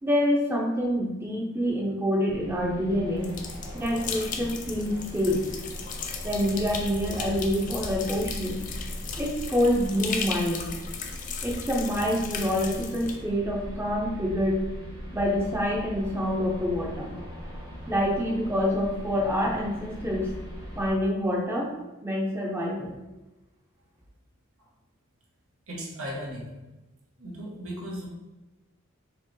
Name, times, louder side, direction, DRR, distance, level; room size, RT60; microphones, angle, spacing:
voice 1, 0.0-3.3 3.7-5.4 6.2-8.6 9.2-10.6 11.4-14.6 15.1-17.1 17.9-20.3 20.8-21.7 22.0-23.0, equal, 10° right, -2 dB, 0.6 m, -26 dB
sound 1, 2.3-20.9, equal, 45° right, 1.5 m, -39 dB
sound 2, 3.2-13.2, left 6 dB, 35° left, 0.4 m, -37 dB
voice 2, 25.7-26.5 27.2-28.1, equal, 80° right, -2 dB, 1.0 m, -36 dB
4.5 x 3.0 x 3.1 m, 1.1 s
head